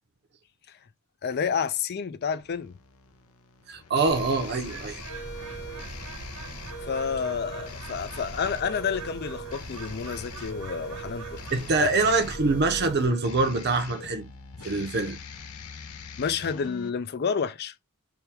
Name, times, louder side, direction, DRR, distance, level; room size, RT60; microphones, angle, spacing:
voice 1, 1.2-2.8 6.8-11.4 11.8-11.9 16.2-17.7, left 6 dB, 45° left, 0.4 m, -29 dB
sound 1, 2.4-16.9, left 1 dB, 80° left, 0.7 m, -43 dB
voice 2, 3.7-5.0 11.5-14.3 14.6-15.2, right 3 dB, 50° right, 0.7 m, -25 dB
Bird, 4.1-13.1, right 2 dB, 80° right, 1.2 m, -41 dB
3.4 x 2.3 x 4.3 m
head